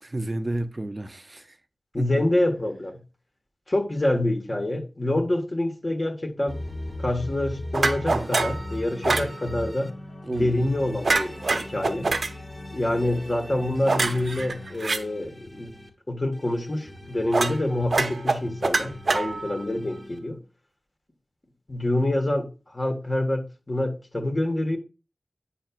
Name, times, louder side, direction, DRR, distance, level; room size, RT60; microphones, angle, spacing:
voice 1, 0.0-1.6 2.0-2.3 8.1-8.5 10.2-10.5, right 1 dB, 35° right, 0.5 m, -32 dB
voice 2, 1.9-3.0 3.7-6.6 7.0-9.9 10.3-12.1 12.7-15.8 16.1-20.4 21.7-24.8, left 1 dB, 40° left, 1.5 m, -26 dB
sound 1, 6.4-14.7, left 1 dB, 65° left, 0.9 m, -45 dB
sound 2, 6.5-9.9 10.3-15.9 16.3-20.2, left 1 dB, 15° left, 1.4 m, -40 dB
sound 3, 7.7-8.6 9.0-9.3 11.0-12.3 13.9-15.0 17.3-17.6 17.9-19.6, right 3 dB, 75° right, 0.7 m, -24 dB
8.7 x 5.8 x 2.4 m
wide cardioid pair, 65°, 0 cm